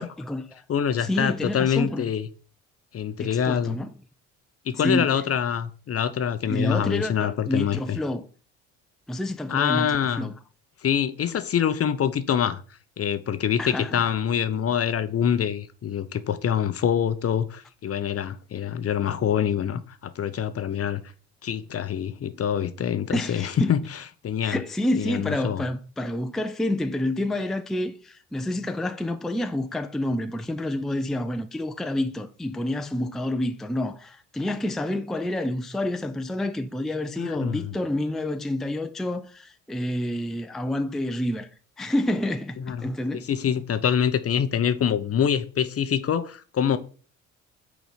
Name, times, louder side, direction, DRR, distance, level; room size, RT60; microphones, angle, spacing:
voice 1, 0.0-0.6 1.0-2.1 3.2-3.9 4.7-5.1 6.5-8.3 9.1-10.3 13.6-14.1 23.1-23.8 24.4-41.5 41.8-43.3, left 1 dB, ahead, 0.5 m, -28 dB
voice 2, 0.7-2.3 2.9-3.8 4.7-8.0 9.5-10.3 10.8-12.6 13.0-21.0 21.4-23.8 24.2-24.6 25.0-25.6 37.2-37.7 42.7-42.9 43.3-46.8, left 8 dB, 35° left, 0.7 m, -25 dB
6.3 x 4.0 x 5.1 m
hypercardioid pair, 55°, 39 cm